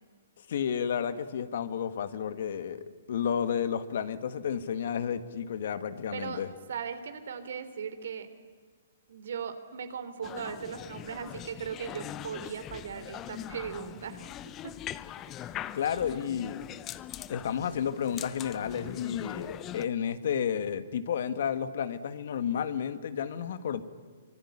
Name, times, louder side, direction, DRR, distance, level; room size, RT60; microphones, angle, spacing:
voice 1, 0.5-6.5 15.7-16.7 17.3-23.8, left 8 dB, 65° left, 11 dB, 1.9 m, -31 dB
voice 2, 6.1-6.4 6.7-8.3 9.1-14.7 15.4-15.6, right 7 dB, 75° right, 10 dB, 3.4 m, -38 dB
sound 1, 10.2-19.9, left 11 dB, 20° left, 0.8 m, -42 dB
25.0 x 24.0 x 9.9 m, 1.5 s
hypercardioid pair, 155°, 0 cm